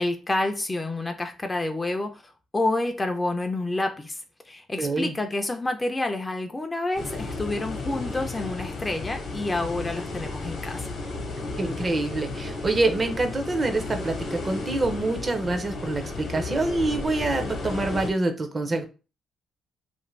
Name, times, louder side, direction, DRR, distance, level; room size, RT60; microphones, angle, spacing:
voice 1, 0.0-4.2 4.5-11.0, left 2 dB, 20° left, 0.4 m, -28 dB
voice 2, 4.8-5.1 11.6-18.9, right 2 dB, 30° right, 0.5 m, -26 dB
sound 1, 7.0-18.1, left 3 dB, 60° left, 0.8 m, -33 dB
2.5 x 2.5 x 3.1 m
cardioid pair, 90°, 0 cm